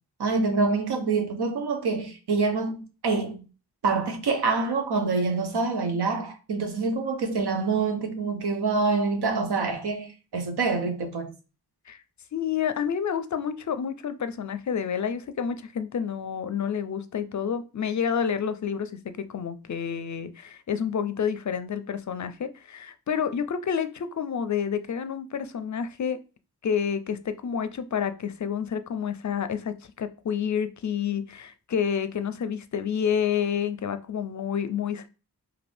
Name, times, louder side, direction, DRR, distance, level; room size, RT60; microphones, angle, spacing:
voice 1, 0.2-3.4 3.8-11.3, right 4 dB, 90° right, 0.7 m, -26 dB
voice 2, 12.3-26.2 26.6-35.1, left 7 dB, 50° left, 0.4 m, -29 dB
2.5 x 2.5 x 3.3 m
cardioid pair, 55°, 38 cm